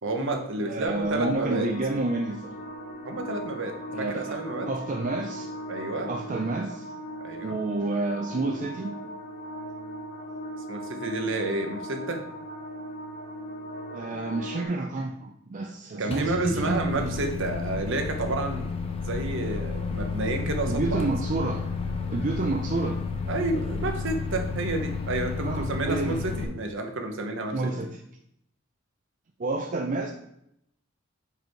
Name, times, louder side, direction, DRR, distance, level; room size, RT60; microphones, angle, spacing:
voice 1, 0.0-1.7 3.0-4.7 5.7-6.1 7.2-7.6 10.7-12.2 16.0-18.7 19.0-21.1 23.3-27.7, right 2 dB, 65° right, 5 dB, 0.9 m, -30 dB
voice 2, 0.6-2.5 3.9-4.4 4.7-5.5 6.1-6.9 7.4-9.0 13.9-17.2 20.6-21.7 22.1-23.0 25.4-26.2 27.5-27.9 29.4-30.1, right 2 dB, 40° right, 3 dB, 0.4 m, -29 dB
sound 1, 0.8-14.6, equal, 50° left, 1.3 m, -39 dB
Microwave oven, 16.1-26.4, left 4 dB, 30° left, 0.7 m, -31 dB
5.1 x 4.5 x 4.6 m, 0.77 s
head